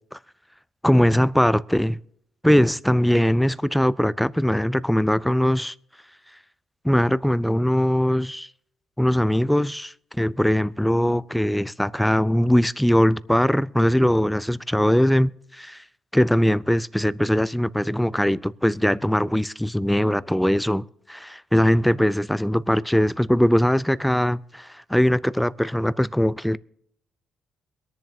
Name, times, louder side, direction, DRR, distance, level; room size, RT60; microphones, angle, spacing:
voice 1, 0.8-2.0 2.4-5.7 6.8-8.5 9.0-15.8 16.1-26.6, equal, 5° left, 0.4 m, -21 dB
23.0 x 10.5 x 2.7 m
cardioid pair, 90°, 0 cm